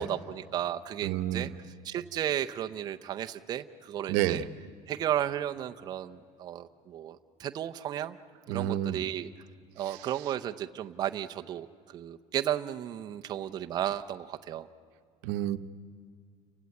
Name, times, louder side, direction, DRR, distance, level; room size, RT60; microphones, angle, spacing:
voice 1, 0.0-1.5 1.8-4.5 4.9-8.2 8.5-9.3 9.8-14.7, right 11 dB, 30° right, 7 dB, 0.6 m, -34 dB
voice 2, 1.0-1.5 4.1-4.4 8.5-9.0 9.9-10.0 15.2-15.6, right 12 dB, 80° right, 11 dB, 0.9 m, -29 dB
29.0 x 16.5 x 9.5 m, 2.1 s
cardioid pair, 175°, 14 cm